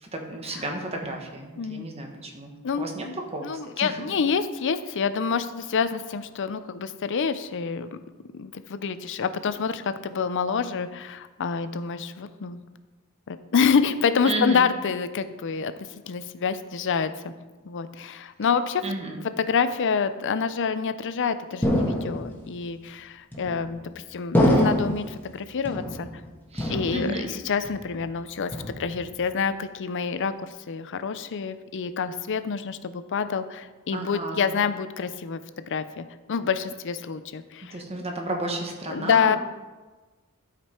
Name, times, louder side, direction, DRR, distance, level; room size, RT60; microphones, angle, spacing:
voice 1, 0.0-2.5 2.8-3.0 3.3-4.0 14.2-14.7 18.8-19.2 26.5-27.3 33.9-34.5 37.7-39.4, right 1 dB, 30° right, 2 dB, 1.2 m, -32 dB
voice 2, 1.6-1.9 2.6-7.9 8.3-12.6 13.3-15.7 16.1-17.3 17.6-18.8 19.4-26.1 26.7-30.3 30.7-37.8 38.9-39.4, left 6 dB, 60° left, 12 dB, 0.5 m, -27 dB
sound 1, 21.6-22.5 23.3-23.8 24.3-25.1 25.7-26.3 26.6-27.4 27.6-28.1 28.5-29.1, left 1 dB, 10° left, 1.4 m, -25 dB
11.5 x 5.1 x 4.4 m, 1.2 s
head